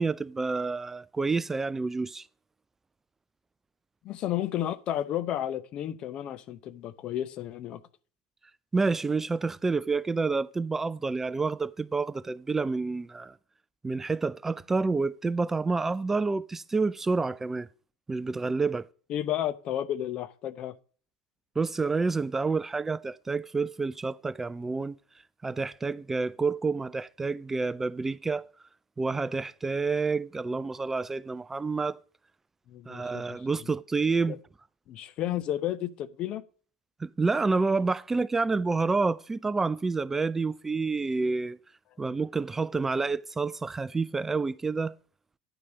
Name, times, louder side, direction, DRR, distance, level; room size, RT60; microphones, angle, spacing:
voice 1, 0.0-2.3 8.7-13.4 13.8-17.7 18.1-18.9 21.6-25.0 25.4-28.4 29.0-32.0 32.9-34.4 37.0-41.6 42.0-44.9, right 4 dB, 15° right, 0.3 m, -28 dB
voice 2, 4.0-7.8 19.1-20.7 32.7-33.4 34.3-34.4 34.9-36.4, left 12 dB, 45° left, 0.7 m, -32 dB
9.9 x 5.3 x 5.0 m
hypercardioid pair, 80°, 2 cm